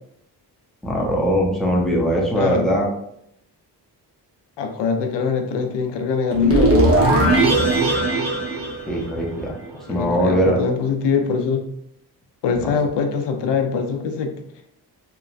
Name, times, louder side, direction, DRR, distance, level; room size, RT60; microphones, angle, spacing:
voice 1, 0.8-2.9 8.9-10.6 12.6-12.7, equal, ahead, -2 dB, 0.6 m, -21 dB
voice 2, 4.6-6.8 9.9-11.6 12.4-14.3, left 5 dB, 80° left, 4 dB, 0.5 m, -23 dB
sound 1, 6.3-9.6, right 1 dB, 35° right, 0.9 m, -18 dB
3.0 x 2.1 x 2.4 m, 0.75 s
cardioid pair, 100°, 42 cm